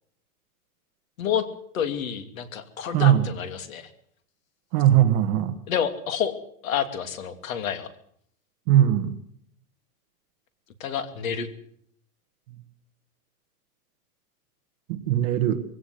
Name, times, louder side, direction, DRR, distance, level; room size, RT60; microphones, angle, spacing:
voice 1, 1.7-3.9 5.7-6.3 6.6-7.9 10.8-11.5, left 8 dB, 60° left, 11 dB, 2.9 m, -29 dB
voice 2, 2.9-3.3 4.7-5.5 8.7-9.1 14.9-15.6, right 11 dB, 30° right, 7 dB, 1.5 m, -20 dB
21.5 x 17.0 x 8.0 m, 0.65 s
supercardioid pair, 175°, 46 cm